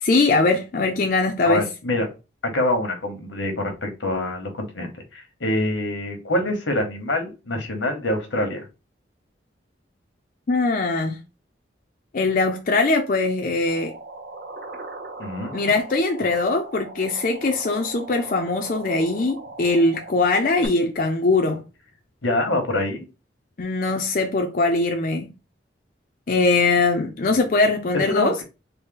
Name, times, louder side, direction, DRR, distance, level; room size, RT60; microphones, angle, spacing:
voice 1, 0.0-1.6 10.5-11.2 12.1-13.9 15.5-21.6 23.6-25.3 26.3-28.4, left 3 dB, 45° left, 0.5 m, -21 dB
voice 2, 1.4-2.1 2.4-8.6 15.2-15.6 22.2-23.1 28.0-28.4, left 1 dB, 85° left, 1.1 m, -25 dB
sound 1, 13.7-20.7, right 2 dB, 55° right, 0.6 m, -39 dB
3.9 x 2.1 x 3.7 m
head